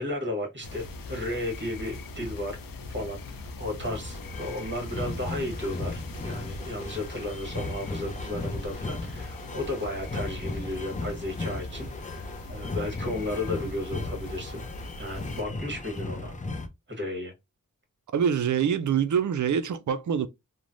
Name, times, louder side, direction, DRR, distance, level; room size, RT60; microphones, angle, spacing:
voice 1, 0.0-2.6 2.9-16.3 16.9-17.3, left 1 dB, 35° right, 1.3 m, -34 dB
sound 1, 0.6-15.4, left 2 dB, 85° left, 0.5 m, -41 dB
sound 2, 3.8-16.7, left 2 dB, 25° left, 0.4 m, -36 dB
voice 2, 18.1-20.3, right 8 dB, 60° right, 0.4 m, -25 dB
3.1 x 2.1 x 2.5 m
wide cardioid pair, 65°, 33 cm